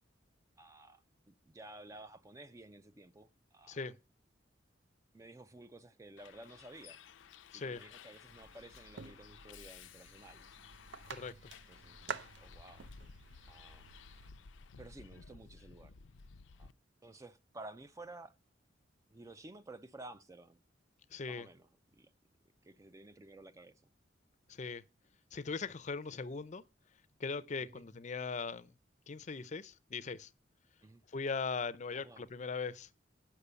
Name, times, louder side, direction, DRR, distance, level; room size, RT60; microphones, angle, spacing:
voice 1, 0.6-3.9 5.1-7.0 7.5-10.5 11.7-12.9 13.5-13.9 14.8-16.0 16.6-16.7 17.0-18.3 19.1-20.6 21.3-22.1 22.6-23.9 26.1-26.3 27.6-27.8 30.8-31.0 31.9-32.3, right 2 dB, 15° right, 0.4 m, -53 dB
Bus, 6.2-16.7, left 6 dB, 90° left, 0.5 m, -56 dB
sound 1, 8.3-14.3, right 6 dB, 75° right, 0.6 m, -49 dB
voice 2, 11.1-11.5 21.1-21.5 24.5-24.8 25.3-26.6 27.2-28.7 29.1-30.3 31.1-32.9, left 4 dB, 40° left, 0.5 m, -39 dB
8.3 x 5.8 x 6.8 m
head